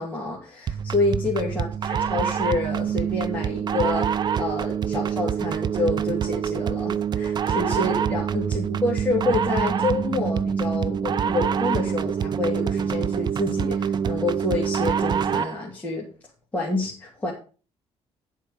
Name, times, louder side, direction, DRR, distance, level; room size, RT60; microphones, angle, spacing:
voice 1, 0.0-16.1 16.5-17.3, left 2 dB, 10° left, -4 dB, 2.4 m, -28 dB
sound 1, 0.7-15.6, right 7 dB, 40° right, 0.5 m, -25 dB
11.0 x 4.6 x 7.0 m, 0.38 s
cardioid pair, 125°, 12 cm